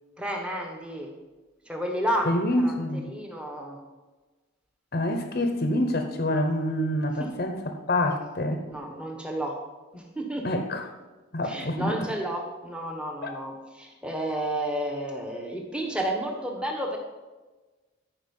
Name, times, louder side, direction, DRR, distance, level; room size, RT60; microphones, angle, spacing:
voice 1, 0.2-1.1 1.6-2.7 3.0-3.8 7.2-7.3 8.7-9.6 9.9-10.5 11.4-17.0, right 1 dB, 5° right, 1 dB, 1.3 m, -31 dB
voice 2, 2.3-3.1 4.9-8.6 10.4-10.8 11.3-11.9 13.2-13.3, left 1 dB, 45° left, 5 dB, 0.9 m, -26 dB
14.0 x 5.1 x 5.5 m, 1.2 s
head